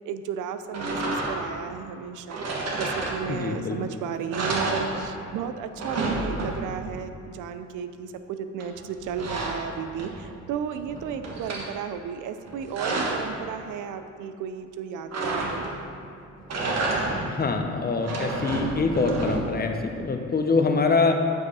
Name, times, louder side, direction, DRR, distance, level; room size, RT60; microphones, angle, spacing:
voice 1, 0.1-2.4 2.8-15.7, right 7 dB, 85° right, 10 dB, 0.5 m, -34 dB
sound 1, 0.7-1.6 2.3-3.6 3.9-4.0 4.3-5.4 5.6-6.9 8.6-10.4 10.8-11.7 12.4-13.3 15.1-15.9 16.4-17.4 17.9-19.7, right 2 dB, 55° right, 1.4 m, -30 dB
voice 2, 3.3-3.8 17.3-21.1, left 4 dB, 30° left, 4 dB, 0.8 m, -24 dB
8.4 x 4.8 x 4.9 m, 2.5 s
cardioid pair, 90°, 30 cm